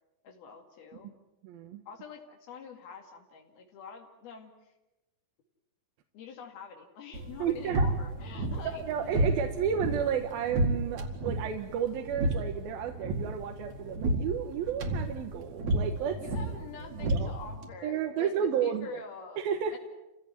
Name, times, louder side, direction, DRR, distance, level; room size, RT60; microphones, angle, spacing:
voice 1, 0.2-1.1 1.9-4.7 6.1-9.2 16.2-19.4 19.7-19.8, left 6 dB, 90° left, 2 dB, 4.3 m, -46 dB
voice 2, 1.4-1.8 7.4-7.9 8.9-16.2 17.0-17.3 17.8-19.0 19.4-19.8, right 8 dB, 80° right, 5 dB, 3.1 m, -32 dB
sound 1, 7.1-17.7, right 2 dB, 55° right, 3.3 m, -32 dB
29.0 x 16.5 x 9.5 m, 1.0 s
omnidirectional pair, 4.3 m